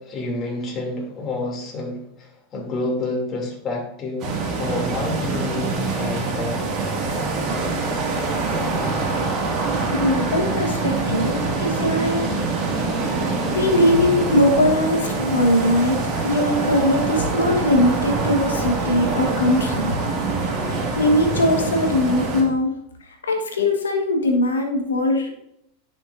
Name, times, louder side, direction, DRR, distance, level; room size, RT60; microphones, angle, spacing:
voice 1, 0.0-6.7, left 2 dB, 35° left, -1 dB, 2.8 m, -29 dB
sound 1, 4.2-22.4, right 3 dB, 45° right, 2.2 m, -24 dB
voice 2, 9.9-12.3 13.5-19.9 20.6-22.7 23.1-25.3, left 1 dB, 90° left, 2 dB, 1.5 m, -20 dB
10.0 x 6.2 x 2.7 m, 0.77 s
hypercardioid pair, 95°, 0 cm